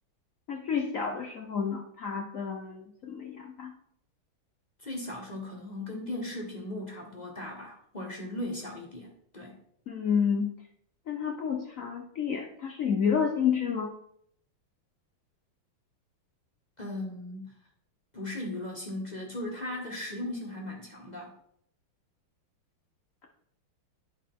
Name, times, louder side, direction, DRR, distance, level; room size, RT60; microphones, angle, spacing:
voice 1, 0.5-3.7 9.9-10.5 11.1-13.9, left 7 dB, 65° left, 1 dB, 0.8 m, -30 dB
voice 2, 4.8-9.6 16.8-17.5 18.1-21.3, left 1 dB, 25° left, -1 dB, 1.0 m, -37 dB
9.6 x 5.0 x 3.6 m, 0.69 s
omnidirectional pair, 2.3 m